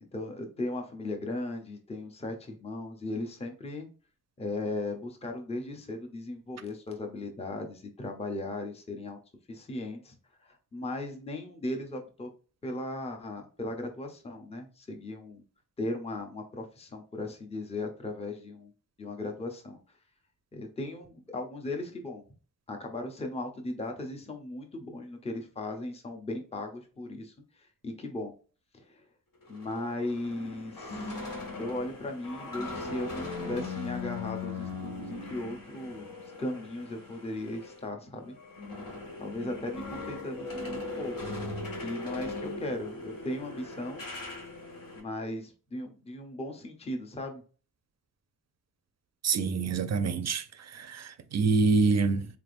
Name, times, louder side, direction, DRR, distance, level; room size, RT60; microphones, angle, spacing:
voice 1, 0.1-3.9 4.4-9.2 9.5-12.3 12.6-15.4 15.8-18.7 19.0-19.8 20.5-22.2 22.7-28.3 28.7-29.1 29.5-31.1 31.6-38.4 39.2-41.1 41.8-44.0 44.9-47.4, left 2 dB, 20° left, 0.6 m, -37 dB
sound 1, 29.4-37.8 38.1-45.0, left 3 dB, 70° left, 1.8 m, -39 dB
voice 2, 49.2-52.3, right 4 dB, 50° right, 0.5 m, -26 dB
3.9 x 3.4 x 2.5 m
wide cardioid pair, 170°, 34 cm